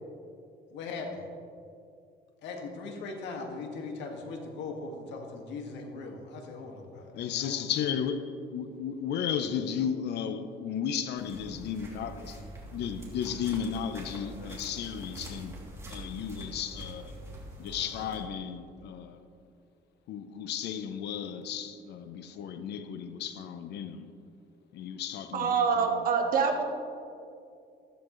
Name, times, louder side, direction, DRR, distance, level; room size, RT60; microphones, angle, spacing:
voice 1, 0.7-1.2 2.4-7.6, left 3 dB, 90° left, 2.0 m, -39 dB
voice 2, 7.1-12.4 12.7-15.6 15.9-17.1 17.6-19.2 20.1-24.1 24.7-26.1, left 8 dB, 70° left, 0.8 m, -34 dB
sound 1, 11.2-18.2, right 1 dB, 15° right, 3.1 m, -44 dB
voice 3, 25.3-26.6, right 5 dB, 55° right, 1.6 m, -25 dB
14.5 x 14.5 x 3.2 m
cardioid pair, 130°, 18 cm